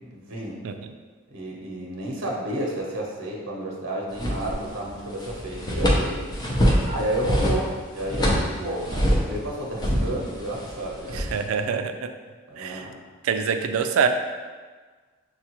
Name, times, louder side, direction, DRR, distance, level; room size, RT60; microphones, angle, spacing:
voice 1, 0.0-0.6 1.3-6.3 6.8-11.3 12.5-12.9, right 1 dB, 60° right, -2 dB, 0.8 m, -31 dB
sound 1, 4.1-4.9 5.2-9.4 9.8-11.5, equal, 20° left, 0.5 m, -24 dB
voice 2, 11.1-12.1 12.6-12.9 13.2-14.1, right 6 dB, 75° right, 7 dB, 0.3 m, -25 dB
6.4 x 2.4 x 2.9 m, 1.4 s
head